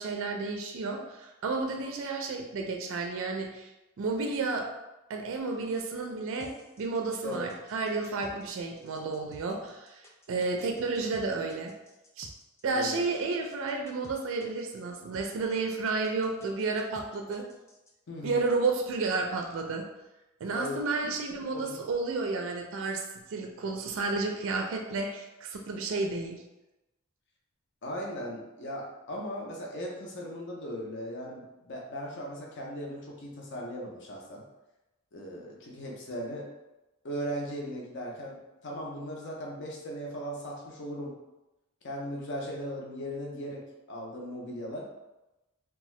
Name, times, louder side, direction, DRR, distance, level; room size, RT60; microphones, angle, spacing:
voice 1, 0.0-3.7 4.0-4.7 5.1-6.5 6.8-10.0 10.3-11.7 12.2-12.3 12.6-17.5 18.2-19.9 20.4-23.0 23.3-26.4, right 3 dB, 65° right, 3 dB, 0.4 m, -31 dB
sound 1, 6.4-17.9, left 1 dB, 15° left, 0.3 m, -53 dB
voice 2, 18.1-18.4 20.5-21.1 21.5-21.8 27.8-34.4 35.1-36.5 37.0-41.1 41.8-43.6 43.9-44.9, equal, 55° left, -1 dB, 0.6 m, -38 dB
2.7 x 2.3 x 3.1 m, 0.99 s
head